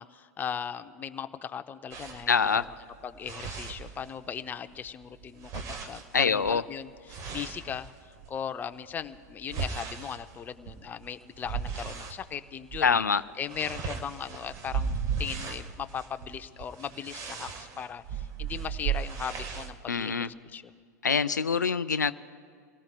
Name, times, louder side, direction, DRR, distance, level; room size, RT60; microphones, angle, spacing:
voice 1, 0.0-2.4 3.0-7.9 8.3-13.0 13.4-20.6, left 8 dB, 20° left, 10 dB, 0.5 m, -38 dB
sound 1, 1.9-4.4 4.7-8.4 8.9-12.2 12.6-12.9 13.2-19.7, right 6 dB, 35° right, 1.3 m, -37 dB
voice 2, 2.3-2.7 6.1-6.6 12.8-13.2 19.9-20.3 21.0-22.1, left 5 dB, 90° left, 14 dB, 0.5 m, -25 dB
28.0 x 18.0 x 2.2 m, 2.1 s
hypercardioid pair, 100°, 9 cm